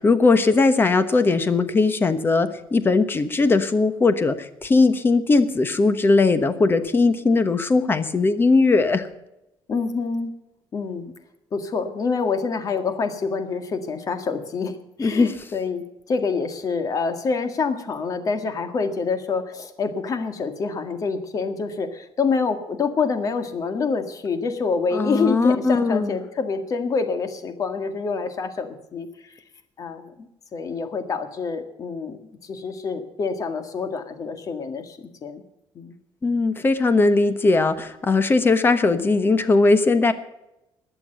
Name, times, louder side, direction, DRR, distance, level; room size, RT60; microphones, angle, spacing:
voice 1, 0.0-9.1 15.0-15.3 24.9-26.1 36.2-40.1, left 3 dB, 25° left, 11 dB, 1.2 m, -19 dB
voice 2, 9.7-10.3 10.7-11.1 11.5-29.3 29.8-32.2 32.4-35.4 35.7-36.0, left 4 dB, 40° left, 8 dB, 1.8 m, -27 dB
21.0 x 7.0 x 6.8 m, 0.90 s
cardioid pair, 140°, 9 cm